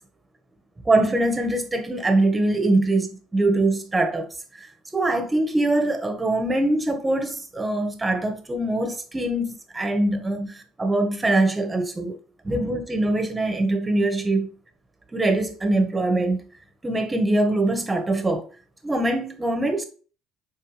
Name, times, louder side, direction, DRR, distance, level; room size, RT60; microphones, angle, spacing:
voice 1, 0.8-4.3 4.5-4.7 4.9-12.2 12.4-14.5 15.1-16.4 16.8-18.5 18.8-19.8, right 2 dB, 15° right, 1.6 m, -23 dB
6.8 x 4.6 x 3.4 m
supercardioid pair, 90°, 0 cm